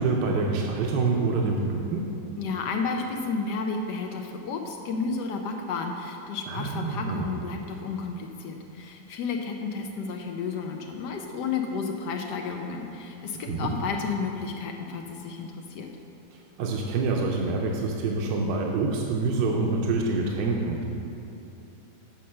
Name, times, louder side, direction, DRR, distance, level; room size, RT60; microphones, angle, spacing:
voice 1, 0.0-2.0 6.5-7.3 13.5-13.7 16.3-20.8, right 3 dB, 75° right, 0 dB, 1.2 m, -26 dB
voice 2, 2.4-15.9, left 4 dB, 80° left, 3 dB, 1.2 m, -32 dB
7.4 x 5.3 x 5.6 m, 2.9 s
omnidirectional pair, 1.9 m